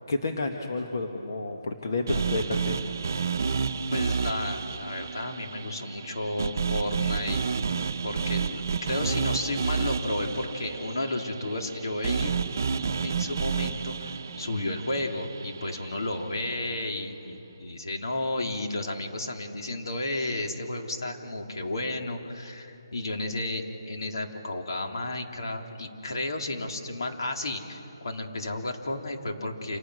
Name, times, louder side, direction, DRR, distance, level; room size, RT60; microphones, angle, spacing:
voice 1, 0.1-2.9, left 2 dB, 50° left, 3 dB, 1.8 m, -30 dB
sound 1, 2.1-16.2, right 5 dB, 45° right, 0.9 m, -30 dB
voice 2, 3.9-7.4 8.0-12.4 13.0-29.8, left 2 dB, 70° left, 2 dB, 3.5 m, -32 dB
29.0 x 27.5 x 6.5 m, 3.0 s
hypercardioid pair, 175°, 2 cm